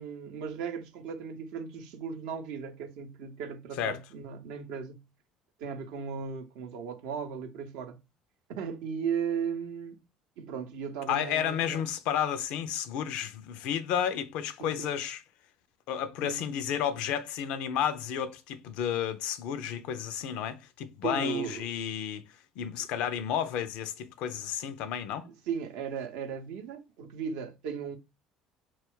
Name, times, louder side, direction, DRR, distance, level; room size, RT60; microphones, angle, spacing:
voice 1, 0.0-5.0 5.6-8.0 8.5-10.0 10.4-11.8 14.6-14.9 16.2-16.4 21.0-21.7 25.3-28.0, right 7 dB, 65° right, 0.5 m, -36 dB
voice 2, 11.1-15.2 15.9-22.3 22.6-25.3, left 9 dB, 60° left, 0.4 m, -32 dB
2.2 x 2.0 x 3.6 m
figure-of-eight pair, 60°, 2 cm